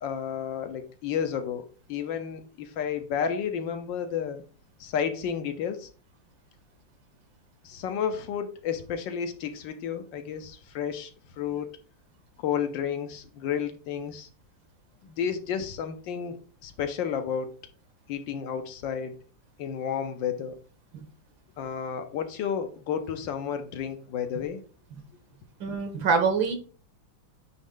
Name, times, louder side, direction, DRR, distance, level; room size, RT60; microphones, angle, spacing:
voice 1, 0.0-4.4 4.8-5.9 7.6-11.1 11.4-11.8 12.4-14.3 15.1-17.5 18.1-19.2 19.6-20.6 21.6-24.6, left 8 dB, 75° left, 1.4 m, -31 dB
voice 2, 25.6-26.6, right 5 dB, 75° right, 1.9 m, -25 dB
9.0 x 3.1 x 3.7 m
omnidirectional pair, 2.1 m